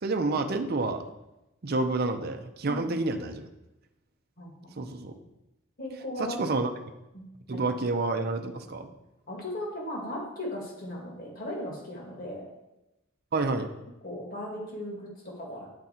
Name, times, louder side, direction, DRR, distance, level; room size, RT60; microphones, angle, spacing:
voice 1, 0.0-1.0 1.6-3.5 4.8-5.2 6.3-6.7 7.5-8.9 13.3-13.7, right 3 dB, 50° right, 6 dB, 0.6 m, -29 dB
voice 2, 2.6-3.1 4.4-4.7 5.8-6.4 7.1-7.6 9.3-12.5 14.0-15.7, left 1 dB, 50° left, -2 dB, 1.9 m, -37 dB
9.6 x 4.0 x 4.4 m, 0.95 s
head